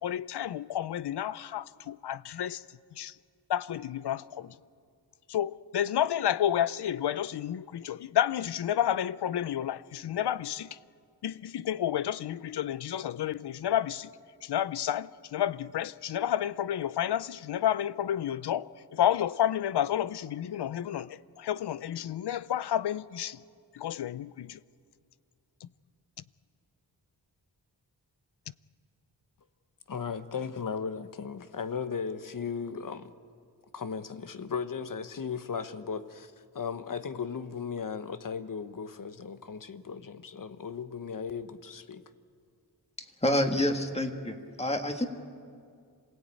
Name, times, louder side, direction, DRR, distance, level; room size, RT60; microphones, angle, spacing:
voice 1, 0.0-2.6 3.0-3.1 3.5-4.5 5.3-10.7 11.2-14.1 14.4-23.4 23.7-24.6 25.6-25.7, left 11 dB, 80° left, 0.6 m, -30 dB
voice 2, 29.9-33.1 33.7-42.0, left 6 dB, 50° left, 1.1 m, -36 dB
voice 3, 43.2-45.1, left 1 dB, 15° left, 1.9 m, -28 dB
27.0 x 17.5 x 9.0 m
wide cardioid pair, 100°, 40 cm